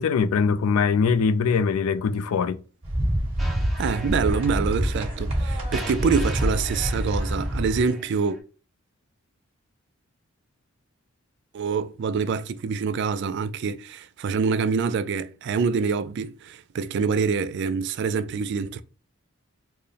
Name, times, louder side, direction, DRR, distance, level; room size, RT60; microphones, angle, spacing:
voice 1, 0.0-2.6, left 5 dB, 85° left, 0.3 m, -22 dB
sound 1, 2.8-7.8, equal, 30° right, 2.0 m, -26 dB
sound 2, 3.4-8.4, right 1 dB, ahead, 0.8 m, -41 dB
voice 2, 3.8-8.4 11.5-18.8, right 5 dB, 55° right, 0.3 m, -26 dB
4.5 x 2.0 x 3.2 m
head